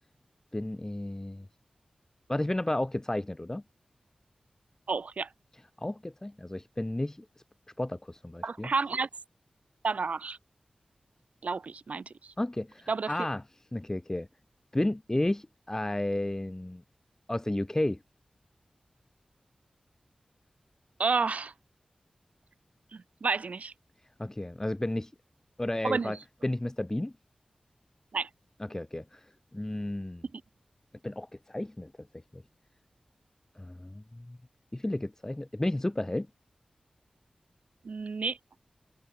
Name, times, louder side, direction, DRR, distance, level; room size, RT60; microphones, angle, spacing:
voice 1, 0.5-1.5 2.3-3.6 5.8-7.3 7.8-8.7 12.4-13.4 13.7-14.3 14.7-16.8 17.3-18.0 24.2-25.1 25.6-26.2 26.4-27.1 28.7-30.2 31.0-31.9 32.3-32.4 33.6-34.4 34.7-36.3, left 1 dB, 20° left, 1.9 m, -32 dB
voice 2, 4.9-5.3 8.4-9.1 9.8-10.4 11.4-12.3 12.9-13.1 21.0-21.5 22.9-23.7 25.8-26.2 28.1-28.3 37.8-38.4, right 4 dB, 70° right, 1.6 m, -30 dB
wide cardioid pair, 60°, 2 cm